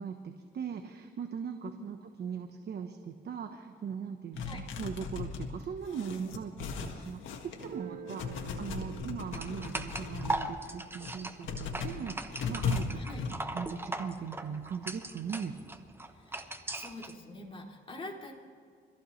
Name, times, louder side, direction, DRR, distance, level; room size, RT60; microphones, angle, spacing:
voice 1, 0.0-6.5 6.8-15.6, right 7 dB, 55° right, 5 dB, 1.2 m, -40 dB
sound 1, 4.3-7.7 8.1-10.4 10.9-13.3, left 5 dB, 75° left, 1.8 m, -37 dB
Guitar, 7.6-13.1, right 5 dB, 80° right, 2.9 m, -51 dB
sound 2, 9.3-17.1, right 1 dB, 10° right, 1.1 m, -39 dB
voice 2, 16.1-18.3, left 2 dB, 25° left, -2 dB, 3.3 m, -45 dB
25.0 x 14.5 x 3.3 m, 2.2 s
cardioid pair, 90°, 20 cm